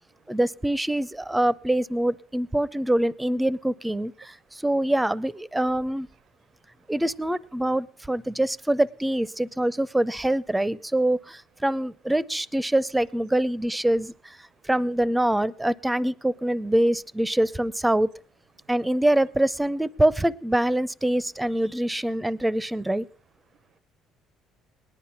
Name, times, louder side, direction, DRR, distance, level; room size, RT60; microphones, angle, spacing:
voice 1, 0.3-6.1 6.9-14.4 14.6-18.1 18.7-23.1, right 1 dB, 10° right, 0.6 m, -24 dB
voice 2, 6.1-6.9 14.5-14.7 18.6-18.7 22.2-22.3 23.5-23.8, right 10 dB, 75° right, 0.6 m, -67 dB
19.0 x 10.5 x 5.8 m
cardioid pair, 100°, 0 cm